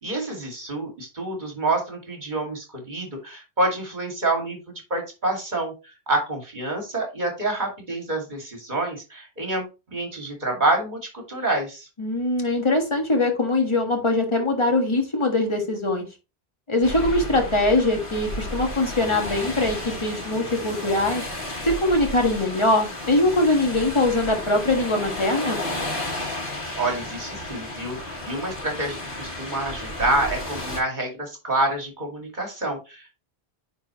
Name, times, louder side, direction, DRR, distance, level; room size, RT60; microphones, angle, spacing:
voice 1, 0.0-4.6 4.9-5.7 6.1-11.9 17.0-17.5 26.8-33.2, right 2 dB, 45° right, 1 dB, 2.4 m, -27 dB
voice 2, 12.0-16.1 16.7-21.3 21.6-25.6, left 2 dB, 30° left, 2 dB, 1.6 m, -22 dB
sound 1, 16.8-30.8, left 1 dB, 55° left, 2.0 m, -33 dB
9.5 x 4.2 x 3.0 m, 0.28 s
omnidirectional pair, 1.1 m